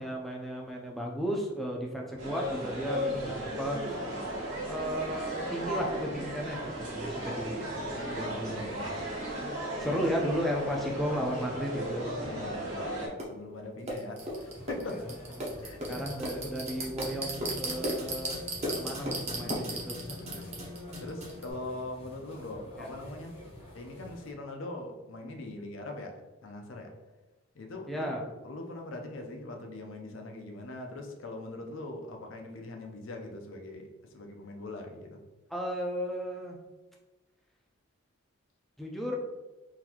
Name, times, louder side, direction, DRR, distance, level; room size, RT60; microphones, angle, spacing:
voice 1, 0.0-4.0 4.7-9.0 9.8-12.3 14.9-15.0 15.4-15.5 15.8-20.3 22.8-22.9 27.9-28.2 35.5-36.6 38.8-39.2, equal, ahead, -1 dB, 0.4 m, -34 dB
sound 1, 2.2-13.1, equal, 60° right, 1.1 m, -36 dB
voice 2, 8.0-9.0 9.8-10.0 12.2-15.1 15.6-16.1 18.8-18.9 19.4-20.6 21.0-23.4 23.7-27.0 27.5-28.1 28.4-35.2, left 2 dB, 60° left, 3 dB, 0.6 m, -42 dB
sound 2, 13.2-13.3 13.9-21.5, right 1 dB, 30° right, 0.7 m, -36 dB
sound 3, 14.2-24.3, equal, 25° left, 0.8 m, -49 dB
3.9 x 2.6 x 2.9 m, 1.1 s
head